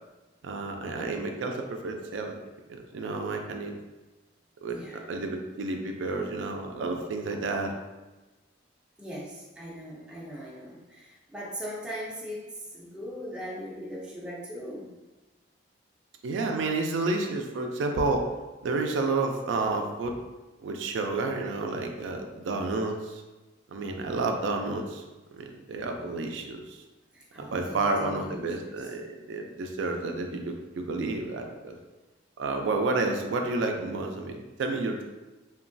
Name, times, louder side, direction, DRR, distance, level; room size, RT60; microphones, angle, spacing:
voice 1, 0.4-2.4 2.7-3.7 4.6-7.7 16.2-18.2 18.6-20.2 20.6-23.2 23.7-25.0 25.3-26.8 27.4-31.8 32.4-35.0, right 3 dB, 75° right, 3 dB, 0.3 m, -30 dB
voice 2, 4.7-5.0 9.0-12.5 12.7-14.9 27.1-28.9, equal, 5° right, -5 dB, 0.4 m, -40 dB
3.0 x 2.2 x 2.5 m, 1.1 s
head